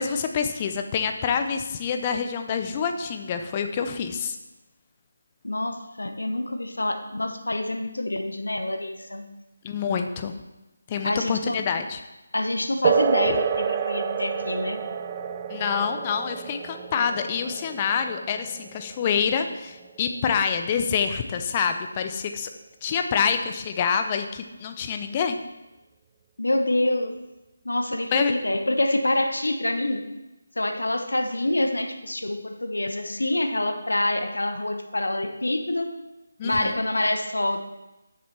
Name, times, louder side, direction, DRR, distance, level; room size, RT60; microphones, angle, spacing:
voice 1, 0.0-4.4 9.6-10.3 10.9-12.0 15.5-22.5 22.8-25.4 28.1-28.3 36.4-36.8, left 6 dB, 25° left, 6 dB, 0.7 m, -26 dB
voice 2, 5.4-9.3 11.0-11.6 12.3-14.8 26.4-27.1 27.6-30.1 30.6-36.0 36.4-37.6, left 1 dB, 70° left, 6 dB, 0.9 m, -26 dB
sound 1, 12.8-20.9, right 8 dB, 20° right, 0.3 m, -29 dB
10.5 x 6.7 x 4.4 m, 1.0 s
figure-of-eight pair, 155°, 0 cm